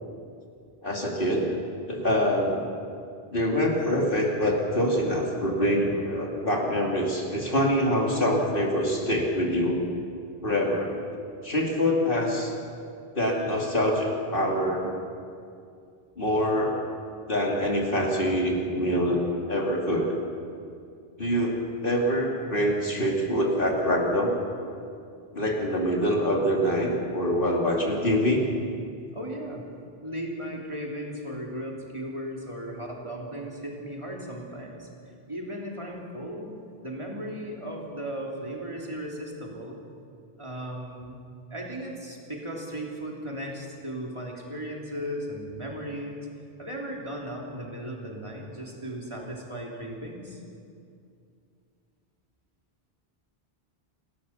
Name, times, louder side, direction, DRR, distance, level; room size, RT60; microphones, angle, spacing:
voice 1, 0.8-1.5 1.9-2.6 3.3-9.8 10.4-10.9 11.4-12.5 13.1-14.9 16.2-16.8 17.3-19.2 19.5-20.2 21.2-24.3 25.3-28.4, equal, 60° left, -1 dB, 3.0 m, -25 dB
voice 2, 29.1-29.6 30.0-34.9 35.3-36.5 36.8-39.8 40.4-41.2 41.5-46.1 46.6-50.4, equal, 30° right, -1 dB, 3.3 m, -36 dB
28.5 x 13.0 x 7.3 m, 2.4 s
omnidirectional pair, 1.1 m